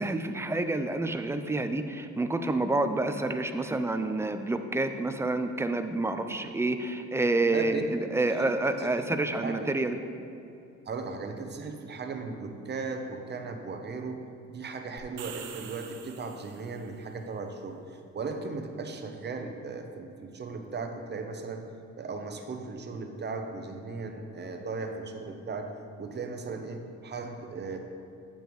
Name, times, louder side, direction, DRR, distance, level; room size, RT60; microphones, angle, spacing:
voice 1, 0.0-10.0, right 2 dB, 10° right, 8 dB, 0.4 m, -28 dB
voice 2, 7.5-7.9 8.3-8.5 8.8-9.1 9.4-9.7 10.9-21.6 22.0-25.7 26.0-27.8, right 4 dB, 35° right, 5 dB, 0.8 m, -37 dB
sound 1, 15.0-16.9, right 8 dB, 75° right, 0.7 m, -45 dB
8.6 x 7.0 x 3.1 m, 2.6 s
cardioid pair, 90°, 30 cm